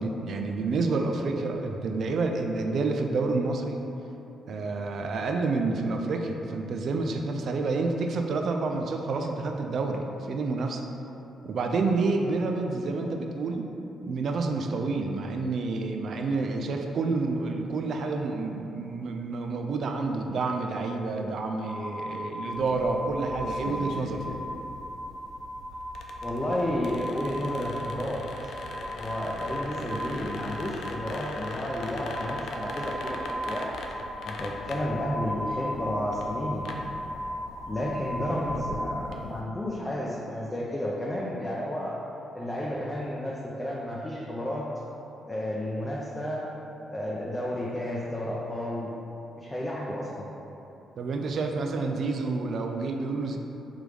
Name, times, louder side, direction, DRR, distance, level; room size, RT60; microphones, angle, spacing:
voice 1, 0.0-3.8 4.5-10.8 11.4-13.7 14.0-24.3 51.0-53.4, right 3 dB, 60° right, 3 dB, 0.3 m, -29 dB
sound 1, 21.6-38.9, equal, 5° right, 1.0 m, -37 dB
sound 2, 22.5-39.4, left 3 dB, 70° left, 0.3 m, -41 dB
voice 2, 26.2-28.5 29.0-33.2 33.5-33.7 34.2-36.7 37.7-42.0 42.3-44.7 45.2-46.5 46.9-48.9 49.4-50.3, left 1 dB, 20° left, -5 dB, 0.6 m, -32 dB
3.6 x 3.3 x 3.2 m, 3.0 s
hypercardioid pair, 45°, 0 cm